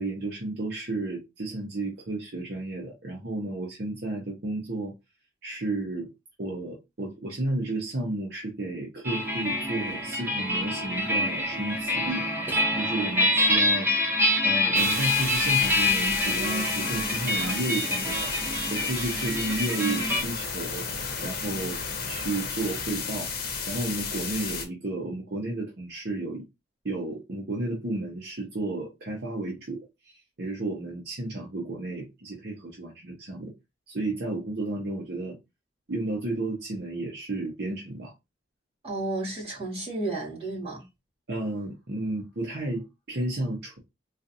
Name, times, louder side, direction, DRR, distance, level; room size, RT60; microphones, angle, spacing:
voice 1, 0.0-4.9 5.4-6.1 6.4-12.3 12.7-14.1 14.4-18.3 18.7-20.9 21.2-21.8 22.1-23.3 23.7-26.4 26.8-33.5 33.9-35.4 35.9-38.1 41.3-43.8, right 2 dB, 55° right, 0.8 m, -32 dB
sound 1, 9.0-20.2, left 1 dB, 10° right, 0.9 m, -26 dB
sound 2, 14.7-24.6, left 5 dB, 50° left, 0.9 m, -33 dB
voice 2, 38.8-40.8, right 2 dB, 30° right, 2.1 m, -32 dB
3.8 x 2.5 x 2.6 m
head